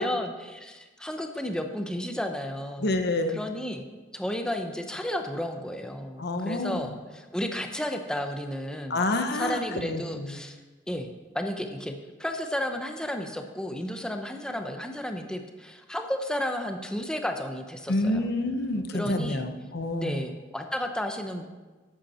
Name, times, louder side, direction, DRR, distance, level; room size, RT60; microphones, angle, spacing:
voice 1, 0.0-3.0 3.3-3.9 4.1-9.0 9.3-10.6 10.9-11.1 11.3-18.2 18.9-19.5 20.0-21.5, left 1 dB, 5° left, 5 dB, 0.8 m, -33 dB
voice 2, 2.8-3.4 6.2-6.9 8.9-10.3 17.9-20.2, left 2 dB, 55° left, 6 dB, 1.0 m, -28 dB
11.5 x 8.3 x 4.3 m, 1.3 s
head